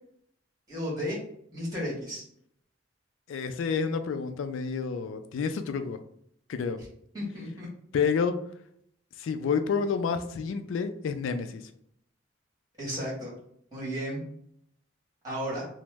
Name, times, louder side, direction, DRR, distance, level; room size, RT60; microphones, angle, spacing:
voice 1, 0.7-1.2 1.5-2.2 7.1-7.7 12.8-13.3 13.7-14.2 15.2-15.7, equal, 20° right, -6 dB, 1.5 m, -33 dB
voice 2, 3.3-6.0 6.5-6.8 7.9-8.4 9.2-11.6, left 5 dB, 80° left, 9 dB, 0.3 m, -29 dB
3.0 x 2.0 x 3.3 m, 0.69 s
head